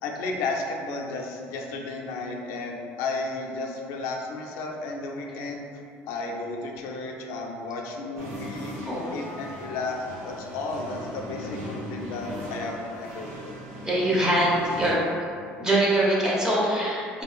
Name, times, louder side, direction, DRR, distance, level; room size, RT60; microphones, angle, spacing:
voice 1, 0.0-5.7 6.1-8.7 9.1-10.0 10.2-13.5, left 3 dB, 85° left, 1 dB, 0.4 m, -33 dB
sound 1, 8.1-14.9, equal, 75° right, 0.8 m, -38 dB
voice 2, 13.8-15.0 15.6-17.2, right 1 dB, 15° right, -6 dB, 1.0 m, -23 dB
4.2 x 2.6 x 2.3 m, 2.4 s
cardioid pair, 115°, 5 cm